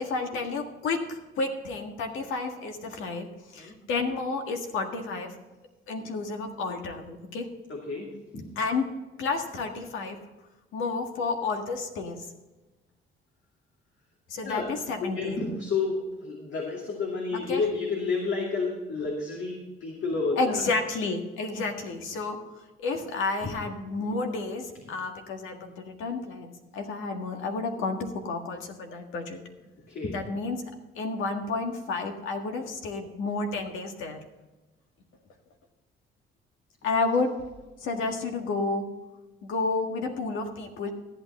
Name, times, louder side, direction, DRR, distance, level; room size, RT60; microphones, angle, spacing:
voice 1, 0.0-3.3 3.5-5.4 5.9-7.5 8.6-8.9 9.2-10.2 10.7-12.3 14.3-15.4 17.5-17.6 20.4-22.5 22.8-29.4 30.1-30.6 31.0-34.2 36.8-37.4 37.8-38.8 39.4-40.9, left 3 dB, 90° left, 4 dB, 1.7 m, -31 dB
voice 2, 7.7-8.5 14.4-14.7 15.0-20.6 23.4-23.5 29.9-30.2, left 4 dB, 70° left, -1 dB, 2.5 m, -30 dB
14.0 x 8.9 x 4.3 m, 1.1 s
cardioid pair, 90°, 20 cm